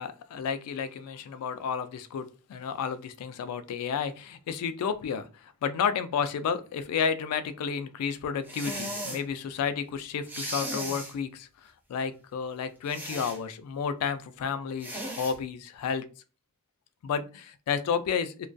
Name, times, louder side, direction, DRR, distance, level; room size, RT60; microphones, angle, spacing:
voice 1, 0.0-16.1 17.0-18.5, left 6 dB, 85° left, 0.3 m, -31 dB
sound 1, 8.4-9.2 10.3-11.1 12.9-13.4 14.8-15.3, right 1 dB, 10° right, 0.4 m, -36 dB
2.2 x 2.2 x 2.5 m
head